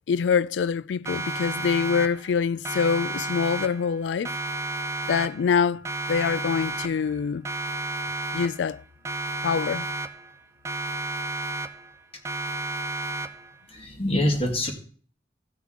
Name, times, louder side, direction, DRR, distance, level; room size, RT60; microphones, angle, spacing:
voice 1, 0.1-4.3 5.1-5.8 6.1-7.5 8.3-8.8 9.4-9.9, left 6 dB, 85° left, 0.4 m, -25 dB
Siren, 1.1-2.4 2.7-4.0 4.3-5.6 5.9-7.2 7.5-8.8 9.1-10.4 10.7-12.0 12.3-13.6, right 2 dB, 15° right, 0.6 m, -32 dB
voice 2, 13.7-14.7, left 1 dB, 35° left, 1.8 m, -25 dB
15.5 x 6.0 x 3.7 m
head